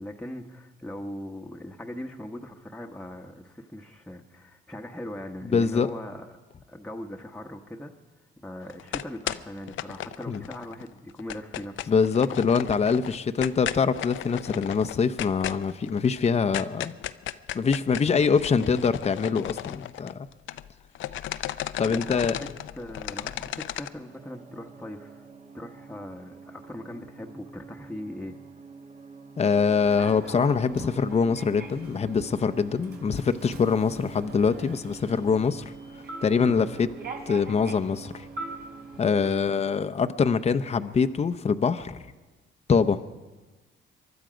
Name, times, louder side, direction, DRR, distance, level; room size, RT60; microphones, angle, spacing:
voice 1, 0.0-6.3 6.7-7.9 8.4-11.9 21.8-22.5 22.7-25.3 25.5-28.4 39.2-39.5, left 1 dB, 5° left, 1 dB, 1.0 m, -40 dB
voice 2, 5.5-5.9 10.3-10.4 11.9-16.9 17.5-20.3 21.8-22.4 29.4-35.7 36.2-36.9 37.3-38.3 39.0-42.0 42.7-43.0, left 5 dB, 30° left, 10 dB, 0.7 m, -24 dB
sound 1, 8.7-10.8 11.1-20.7 20.9-23.9, left 12 dB, 75° left, 0.5 m, -35 dB
sound 2, 24.1-39.0, right 4 dB, 35° right, 1.2 m, -47 dB
Human voice / Subway metro underground, 29.6-39.1, right 3 dB, 55° right, 3.1 m, -43 dB
23.5 x 12.0 x 5.1 m, 1.2 s
cardioid pair, 90°, 20 cm